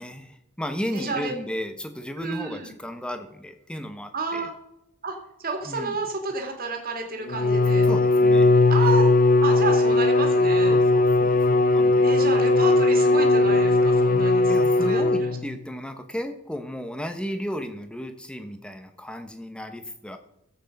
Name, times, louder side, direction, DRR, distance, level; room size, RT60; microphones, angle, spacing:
voice 1, 0.0-4.5 5.6-6.0 7.5-9.0 10.7-12.1 14.5-20.2, equal, 5° left, 8 dB, 0.9 m, -34 dB
voice 2, 0.9-1.3 2.2-2.7 4.1-4.5 5.0-7.9 8.7-9.1 9.4-10.8 12.0-14.6 14.8-15.3, right 3 dB, 40° right, 3 dB, 2.3 m, -30 dB
Bowed string instrument, 7.3-15.6, left 2 dB, 40° left, 0.5 m, -19 dB
13.0 x 8.1 x 5.3 m, 0.85 s
head